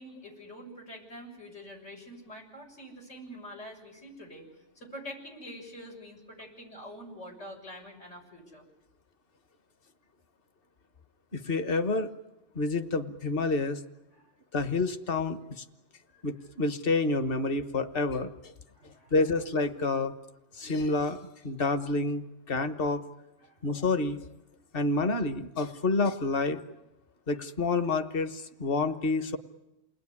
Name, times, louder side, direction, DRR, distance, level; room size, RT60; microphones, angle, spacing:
voice 1, 0.0-4.5 4.8-8.6 14.2-14.3 16.1-16.2 18.7-19.1 23.4-23.6, equal, 90° left, 1 dB, 7.3 m, -46 dB
voice 2, 11.3-12.1 12.5-13.8 14.5-15.6 16.2-18.3 19.1-20.1 20.6-21.2 21.4-23.0 23.6-24.2 24.7-26.6 27.3-29.4, left 3 dB, 50° left, 9 dB, 1.5 m, -28 dB
29.0 x 20.5 x 9.8 m, 0.97 s
omnidirectional pair, 1.2 m